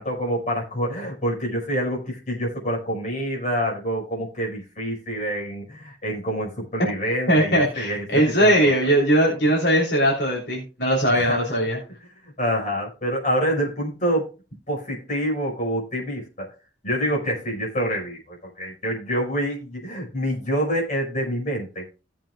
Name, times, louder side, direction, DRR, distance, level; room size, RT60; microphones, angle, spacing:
voice 1, 0.0-8.7 11.1-11.4 12.0-12.1 12.4-14.3 14.7-16.5 16.8-21.8, equal, 40° left, -2 dB, 4.8 m, -27 dB
voice 2, 7.3-11.8, right 1 dB, 65° left, -3 dB, 3.3 m, -20 dB
17.0 x 7.3 x 2.3 m, 0.32 s
head